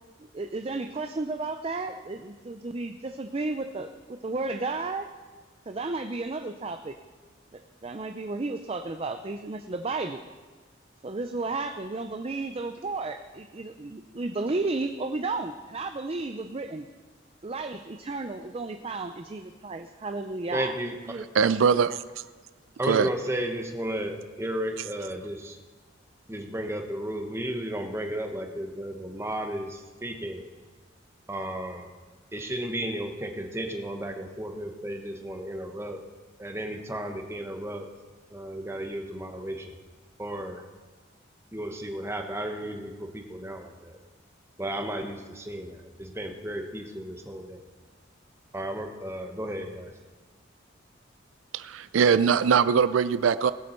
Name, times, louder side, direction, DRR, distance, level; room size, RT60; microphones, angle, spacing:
voice 1, 0.2-5.1 5.7-7.0 7.5-10.2 11.0-16.9 17.4-20.8 21.1-21.3, right 3 dB, 30° right, 7 dB, 0.5 m, -33 dB
voice 2, 20.5-21.0 22.8-25.6 26.3-30.4 31.3-31.9 32.3-36.0 36.4-37.8 38.3-39.7 40.2-40.6 41.5-44.0 44.6-47.6 48.5-49.9, right 1 dB, 15° right, 4 dB, 1.0 m, -33 dB
voice 3, 21.3-22.0 22.8-23.1 51.5-53.5, right 6 dB, 90° right, 15 dB, 0.4 m, -22 dB
19.0 x 8.4 x 4.5 m, 1.4 s
head